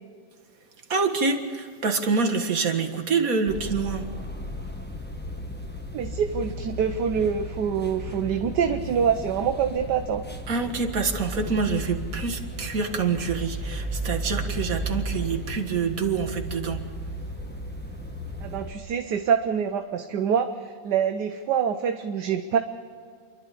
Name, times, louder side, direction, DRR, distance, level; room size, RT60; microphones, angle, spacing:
voice 1, 0.9-4.1 10.5-16.8, right 4 dB, 50° right, 4 dB, 2.0 m, -26 dB
sound 1, 3.5-18.7, equal, 5° left, 1.1 m, -34 dB
voice 2, 5.9-10.2 18.4-22.6, right 7 dB, 70° right, 7 dB, 1.4 m, -25 dB
29.0 x 11.5 x 8.4 m, 2.2 s
omnidirectional pair, 1.9 m